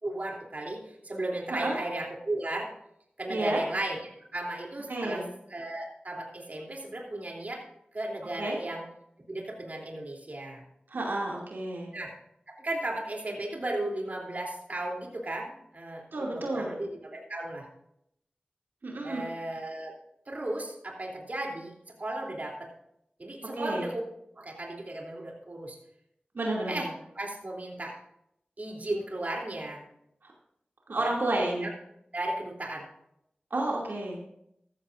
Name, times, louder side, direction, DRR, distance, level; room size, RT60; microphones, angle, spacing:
voice 1, 0.0-2.7 3.2-5.2 5.5-7.6 7.9-8.8 9.3-10.6 11.9-12.1 12.5-17.7 19.0-19.9 20.3-21.7 22.0-22.7 23.2-24.0 24.4-25.8 26.7-26.9 27.1-28.0 28.6-29.8 31.0-31.1 31.6-31.7 32.1-32.9, right 1 dB, 50° right, -1 dB, 3.1 m, -35 dB
voice 2, 3.3-3.6 4.9-5.3 8.4-8.6 10.9-11.9 16.1-16.7 18.8-19.2 23.5-23.9 26.3-26.9 30.2-30.3 30.9-31.7 33.5-34.2, right 2 dB, 85° right, -2 dB, 2.5 m, -31 dB
14.0 x 14.0 x 2.6 m, 0.75 s
wide cardioid pair, 65°, 3 cm